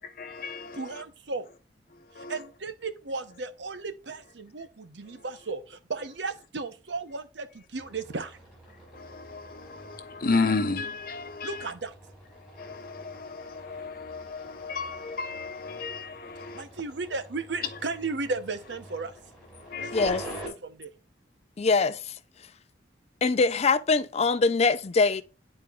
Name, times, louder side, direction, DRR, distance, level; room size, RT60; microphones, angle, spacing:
voice 1, 0.2-1.0 2.1-2.3 8.9-11.6 12.6-16.6 19.7-20.1, left 4 dB, 55° left, 1.0 m, -33 dB
voice 2, 0.7-1.5 2.2-8.4 11.4-11.9 16.5-19.1 19.8-20.9, right 3 dB, 70° right, 0.8 m, -35 dB
sound 1, 7.7-20.5, right 1 dB, 5° right, 3.9 m, -47 dB
voice 3, 19.9-20.2 21.6-22.1 23.2-25.2, left 4 dB, 35° left, 0.4 m, -23 dB
10.5 x 4.4 x 2.4 m
head